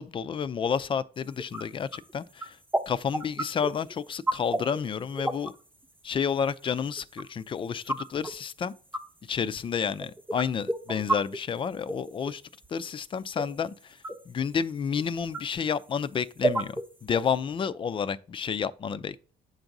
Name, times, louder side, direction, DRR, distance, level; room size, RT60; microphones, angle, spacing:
voice 1, 0.0-2.6 2.9-5.5 6.0-8.7 9.2-12.4 12.7-19.3, left 7 dB, 30° left, 0.4 m, -30 dB
sound 1, 1.4-1.6 1.9-2.1 2.4-2.5 2.7-2.8 3.1-5.5 5.8-5.9 6.6-7.2 7.9-8.3 8.9-9.0 9.7-9.8 10.0-11.4 11.9-12.3 12.6-12.8 13.4-13.5 14.0-14.1 15.0-15.1 15.3-15.4 16.4-16.8 17.1-17.2, right 2 dB, 10° right, 0.8 m, -28 dB
7.8 x 2.6 x 5.9 m
cardioid pair, 110°, 17 cm